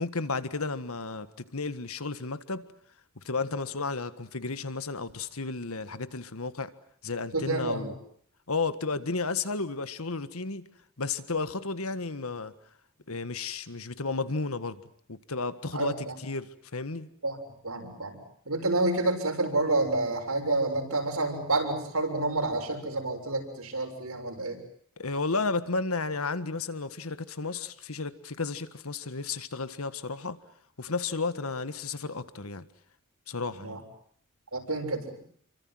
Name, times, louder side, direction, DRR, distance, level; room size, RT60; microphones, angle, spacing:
voice 1, 0.0-2.7 3.3-6.7 7.0-7.9 8.5-10.6 11.0-12.5 13.1-14.8 15.1-17.1 25.0-30.4 30.8-32.6 33.3-33.8, left 3 dB, 85° left, 1.6 m, -33 dB
voice 2, 7.3-7.9 15.7-16.1 17.2-17.4 17.6-18.2 18.5-24.6 33.6-33.8 34.5-35.0, right 2 dB, 90° right, 7.1 m, -29 dB
29.0 x 24.5 x 7.8 m
head